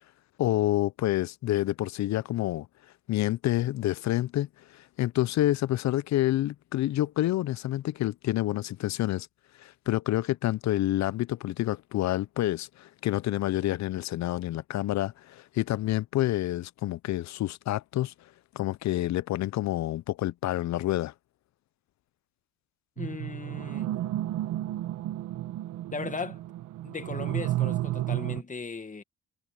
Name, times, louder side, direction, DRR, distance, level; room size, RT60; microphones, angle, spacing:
voice 1, 0.4-2.7 3.1-9.3 9.6-18.1 18.5-21.1, left 15 dB, 65° left, 0.5 m, -28 dB
voice 2, 23.0-23.9 25.9-26.4 26.8-29.0, left 4 dB, 25° left, 1.6 m, -37 dB
sound 1, 23.0-28.4, right 14 dB, 90° right, 1.3 m, -32 dB
cardioid pair, 90°, 30 cm